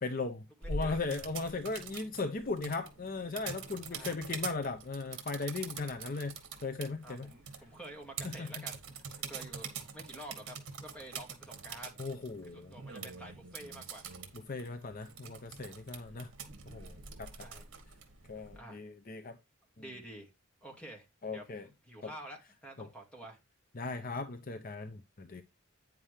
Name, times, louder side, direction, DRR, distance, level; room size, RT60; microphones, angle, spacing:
voice 1, 0.0-6.3 6.6-7.3 8.2-8.5 12.0-12.7 14.5-16.3 16.7-17.3 18.3-19.4 21.2-21.7 22.8-22.9 23.7-25.4, left 3 dB, 40° left, 0.6 m, -37 dB
voice 2, 0.6-1.2 3.9-4.2 7.0-8.8 9.2-12.0 12.5-14.1 15.9-16.2 17.4-17.7 18.5-18.8 19.8-20.3 20.6-23.4, right 1 dB, 5° left, 2.2 m, -49 dB
sound 1, 0.6-18.6, right 5 dB, 60° right, 2.3 m, -45 dB
9.5 x 7.2 x 3.4 m
head